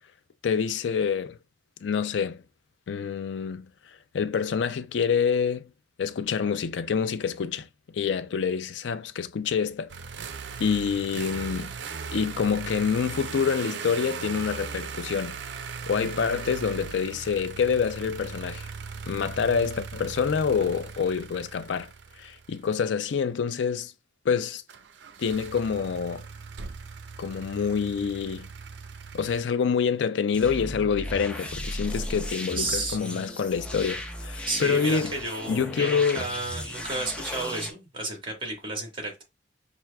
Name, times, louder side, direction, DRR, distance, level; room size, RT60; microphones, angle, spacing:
voice 1, 0.4-1.4 1.8-2.4 2.9-3.7 4.1-5.7 6.0-9.9 10.6-11.7 12.1-15.4 15.9-18.7 19.1-21.9 22.2-23.9 24.3-24.6 25.2-26.3 27.2-28.5 29.1-35.1 35.5-36.3, left 6 dB, 85° left, 0.4 m, -27 dB
sound 1, 9.9-22.9 24.7-29.4, right 5 dB, 75° right, 0.4 m, -39 dB
sound 2, 30.3-37.7, left 1 dB, 5° left, 0.5 m, -36 dB
voice 2, 32.6-33.0 34.4-39.2, right 2 dB, 30° right, 1.5 m, -32 dB
5.9 x 2.5 x 2.2 m
head